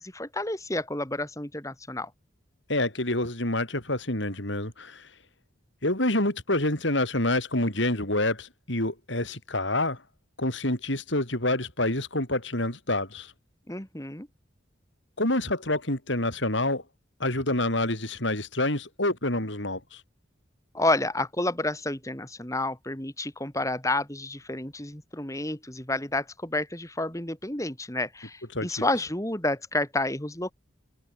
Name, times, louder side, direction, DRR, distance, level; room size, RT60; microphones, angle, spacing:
voice 1, 0.0-2.1 13.7-14.3 20.7-30.5, left 2 dB, 15° left, 2.8 m, -30 dB
voice 2, 2.7-5.1 5.8-10.0 10.4-13.3 15.2-16.8 17.2-20.0 28.5-28.9, left 1 dB, 70° left, 5.7 m, -27 dB
head